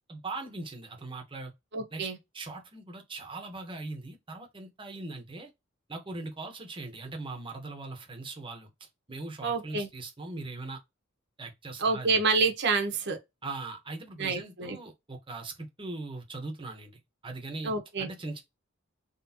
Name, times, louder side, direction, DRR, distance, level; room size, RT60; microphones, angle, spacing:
voice 1, 0.1-1.5 1.9-5.5 5.9-10.8 11.4-12.1 13.4-17.7 18.0-18.4, right 3 dB, 25° right, 1.1 m, -40 dB
voice 2, 1.7-2.2 9.4-9.9 11.8-13.2 14.2-14.8 17.6-18.1, right 4 dB, 60° right, 1.1 m, -28 dB
4.1 x 3.2 x 2.8 m
head